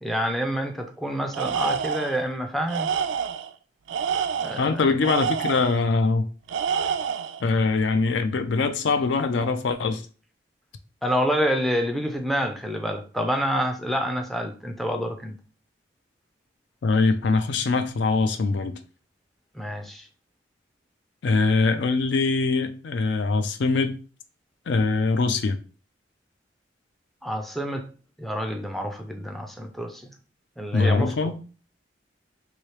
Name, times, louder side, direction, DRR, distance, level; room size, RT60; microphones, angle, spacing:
voice 1, 0.0-2.9 4.4-4.8 11.0-15.4 19.6-20.1 27.2-27.9 28.2-30.0 30.6-31.3, equal, ahead, 0.4 m, -27 dB
Tools, 1.3-2.2 2.7-3.5 3.9-5.8 6.5-7.4, right 7 dB, 80° right, 0.3 m, -28 dB
voice 2, 4.6-6.2 7.4-10.0 16.8-18.8 21.2-24.0 24.7-25.6 30.7-31.4, left 3 dB, 70° left, 0.4 m, -23 dB
3.1 x 2.8 x 3.1 m
head